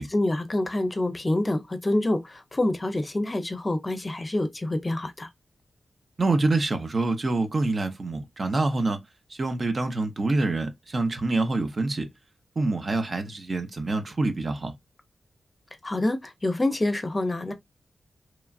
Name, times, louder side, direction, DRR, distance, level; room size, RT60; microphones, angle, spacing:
voice 1, 0.0-5.3 15.8-17.5, left 1 dB, 30° left, 0.5 m, -27 dB
voice 2, 6.2-9.0 9.3-12.1 12.6-14.7, right 2 dB, 50° right, 0.6 m, -26 dB
3.0 x 2.3 x 2.3 m
cardioid pair, 55°, 0 cm